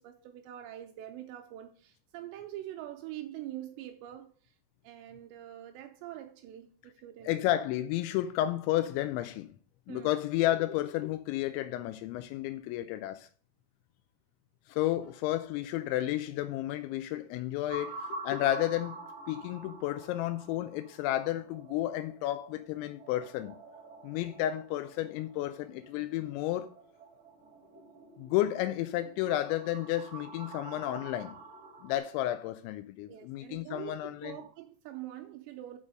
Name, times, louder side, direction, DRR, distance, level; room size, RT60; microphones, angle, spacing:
voice 1, 0.0-4.6 4.8-7.5 9.9-10.2 14.8-15.0 33.1-35.8, right 13 dB, 90° right, 2.5 m, -44 dB
voice 2, 7.3-9.5 9.9-13.3 14.7-18.9 19.3-23.6 24.0-26.7 28.2-31.4 31.8-34.4, left 14 dB, 85° left, 2.6 m, -32 dB
sound 1, 17.7-32.0, right 2 dB, 30° right, 2.2 m, -48 dB
7.4 x 4.8 x 6.3 m
omnidirectional pair, 5.7 m